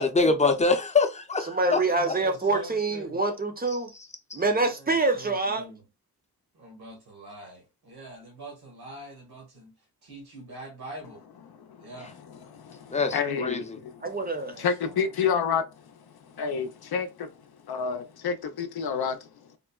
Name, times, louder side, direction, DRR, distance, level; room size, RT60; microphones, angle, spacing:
voice 1, 0.0-1.8 2.1-2.2 12.9-13.8, left 3 dB, 20° left, 0.5 m, -24 dB
voice 2, 1.5-3.9 4.3-5.7 14.0-14.6, right 3 dB, 25° right, 0.6 m, -26 dB
voice 3, 2.2-3.2 4.7-5.8 6.5-9.7 10.0-11.2 11.8-12.1 12.9-13.2 14.5-15.1, right 1 dB, 80° right, 1.4 m, -44 dB
voice 4, 11.5-11.9 12.3-14.1 14.6-15.9 16.3-17.3 17.7-19.3, left 6 dB, 75° left, 0.6 m, -29 dB
3.7 x 2.1 x 2.3 m
wide cardioid pair, 90°, 37 cm